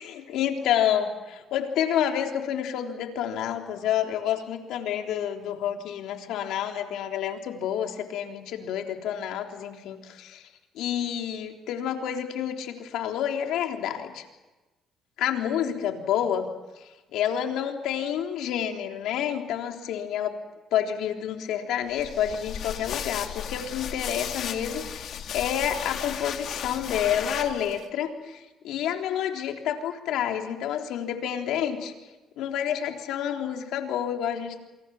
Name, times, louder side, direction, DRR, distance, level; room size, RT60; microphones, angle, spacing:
voice 1, 0.0-10.4 10.8-14.2 15.2-16.5 16.8-20.4 20.7-31.9 32.4-34.6, left 9 dB, 80° left, 3 dB, 3.6 m, -29 dB
sound 1, 21.9-27.9, left 8 dB, 65° left, 2.6 m, -35 dB
27.5 x 26.0 x 7.2 m, 1.1 s
cardioid pair, 95°, 0 cm